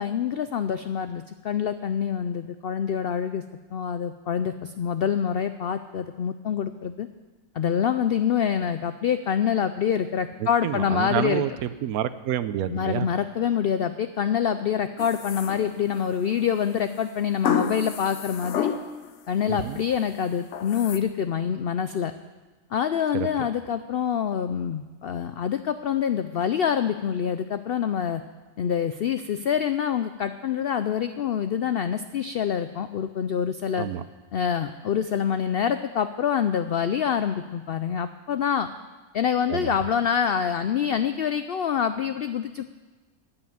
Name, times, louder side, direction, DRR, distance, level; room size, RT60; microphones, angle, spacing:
voice 1, 0.0-3.4 3.7-7.1 7.6-11.4 12.7-18.7 19.3-22.1 22.7-28.2 28.6-33.9 34.3-38.7 39.1-42.6, left 8 dB, 90° left, 10 dB, 0.5 m, -26 dB
voice 2, 10.6-13.1 19.5-19.8 23.1-23.5 33.8-34.0 39.5-39.7, right 11 dB, 80° right, 13 dB, 1.1 m, -28 dB
sound 1, 15.0-16.1 17.4-19.1 19.5-20.0 20.5-21.0, left 7 dB, 60° left, 1.0 m, -30 dB
16.0 x 5.9 x 9.3 m, 1.3 s
omnidirectional pair, 1.6 m